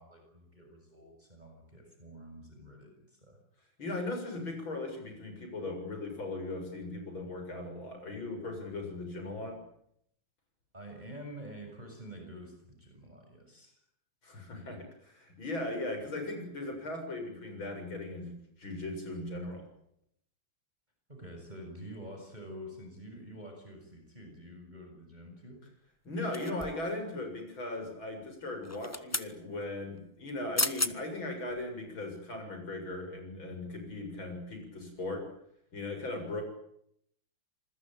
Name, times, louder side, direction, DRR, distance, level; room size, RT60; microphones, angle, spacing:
voice 1, 0.0-3.4 4.4-4.5 10.7-13.8 21.1-25.6, equal, 20° right, 3 dB, 6.6 m, -48 dB
voice 2, 3.8-9.6 14.2-19.7 26.0-35.3 35.7-36.4, left 2 dB, 75° left, 4 dB, 8.1 m, -38 dB
sound 1, 26.3-26.9 28.6-29.3 30.3-30.4 30.6-30.9 31.5-31.6, left 2 dB, 15° left, 0.5 m, -33 dB
27.0 x 21.5 x 9.0 m, 0.72 s
omnidirectional pair, 2.2 m